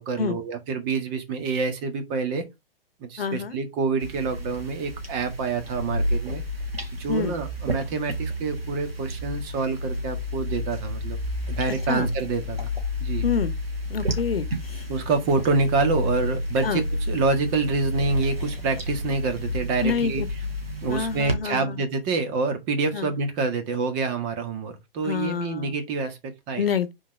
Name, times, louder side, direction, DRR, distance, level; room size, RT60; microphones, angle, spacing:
voice 1, 0.0-2.4 3.0-6.4 6.9-11.2 11.5-12.7 13.0-13.3 14.9-20.2 20.8-26.7, right 4 dB, 30° right, 1.8 m, -27 dB
voice 2, 3.2-3.6 7.1-7.3 11.9-12.1 13.2-13.5 13.9-14.9 16.6-16.8 19.8-20.3 20.9-21.8 22.9-23.1 25.0-25.8 26.6-26.9, left 6 dB, 75° left, 1.1 m, -27 dB
sound 1, 4.0-21.3, left 1 dB, 90° right, 2.2 m, -30 dB
5.8 x 4.5 x 5.3 m
hypercardioid pair, 130°, 29 cm